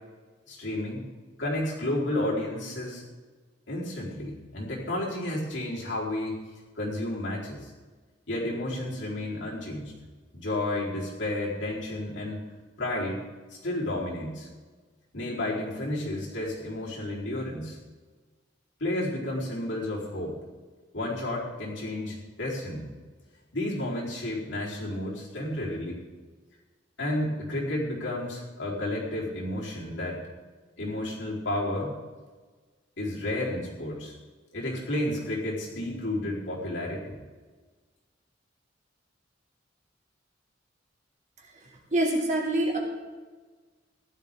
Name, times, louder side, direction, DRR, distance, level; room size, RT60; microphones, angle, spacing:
voice 1, 0.5-1.0 1.4-3.0 3.7-6.4 6.8-7.7 8.3-9.9 10.3-12.4 12.8-13.2 13.5-14.5 15.1-17.8 18.8-20.4 20.9-22.9 23.5-26.0 27.0-30.2 30.8-31.9 33.0-34.1 34.5-37.2, left 1 dB, 70° left, -5 dB, 4.3 m, -31 dB
voice 2, 41.9-42.8, right 1 dB, 40° right, -1 dB, 2.9 m, -25 dB
16.0 x 12.0 x 3.8 m, 1.4 s
head